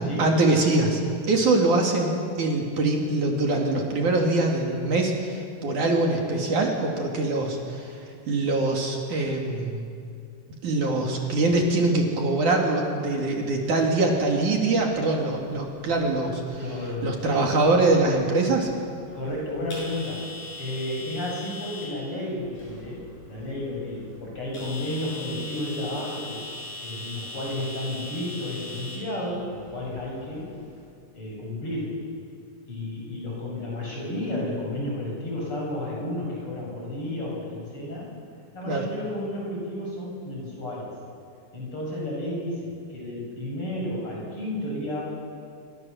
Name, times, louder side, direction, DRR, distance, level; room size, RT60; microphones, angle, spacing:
voice 1, 0.2-1.0 1.3-2.1 2.4-8.0 8.3-9.9 10.6-16.6 17.0-18.7 38.7-38.8, right 2 dB, 60° right, 0 dB, 3.9 m, -23 dB
sound 1, 14.8-30.8, left 2 dB, 90° left, 9.7 m, -42 dB
voice 2, 16.6-17.5 19.1-20.3 20.6-26.4 26.8-30.5 31.1-31.9 32.7-38.1 38.5-41.0 41.5-45.0, left 1 dB, 35° left, -3 dB, 8.9 m, -32 dB
27.5 x 25.5 x 7.2 m, 2.4 s
omnidirectional pair, 4.0 m